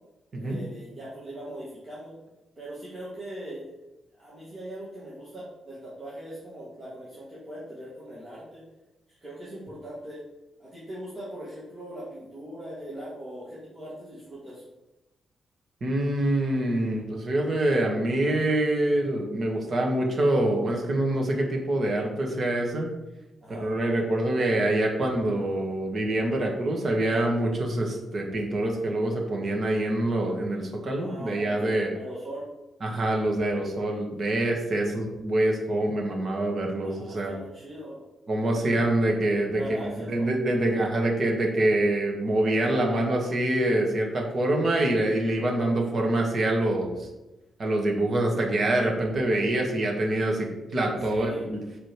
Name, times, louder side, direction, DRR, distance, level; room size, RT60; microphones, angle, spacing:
voice 1, 0.3-2.1 2.6-3.8 4.1-8.6 9.1-10.2 10.6-14.6 23.4-23.7 27.9-28.0 31.0-32.5 36.8-38.1 38.5-38.9 39.6-40.3 51.0-51.5, right 1 dB, 25° right, -9 dB, 2.2 m, -40 dB
voice 2, 15.8-22.9 23.5-31.9 32.8-37.3 38.3-39.6 39.9-47.1 47.6-51.6, right 1 dB, 40° right, 0 dB, 1.7 m, -25 dB
6.6 x 5.0 x 4.7 m, 0.99 s
cardioid pair, 135°, 0 cm